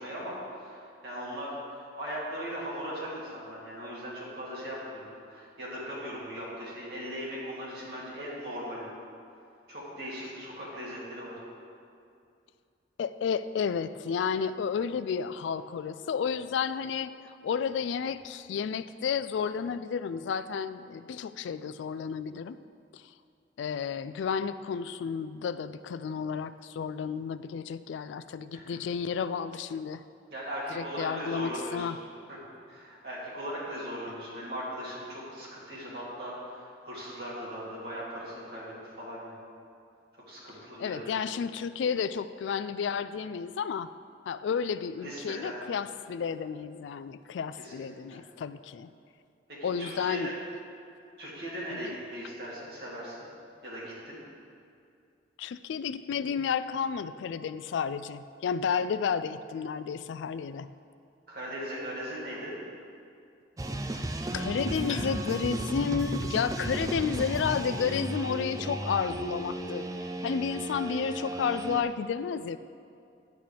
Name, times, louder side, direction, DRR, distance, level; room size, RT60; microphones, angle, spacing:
voice 1, 0.0-8.8 9.7-11.3 28.5-28.8 30.3-32.0 32.3-32.4 32.7-39.4 40.3-41.2 45.0-45.6 47.6-48.2 49.6-50.3 51.2-53.2 53.6-54.2 61.3-62.6, equal, 55° right, -7 dB, 2.6 m, -39 dB
voice 2, 13.0-22.6 22.9-23.0 23.6-30.0 30.7-32.0 40.8-43.9 44.3-48.9 49.6-50.3 51.7-52.0 55.4-60.7 63.9-64.0 64.3-69.9 70.2-72.6, left 6 dB, 75° left, 13 dB, 0.3 m, -32 dB
sound 1, 63.6-71.8, right 1 dB, 20° right, 0.3 m, -34 dB
10.5 x 8.9 x 3.4 m, 2.4 s
head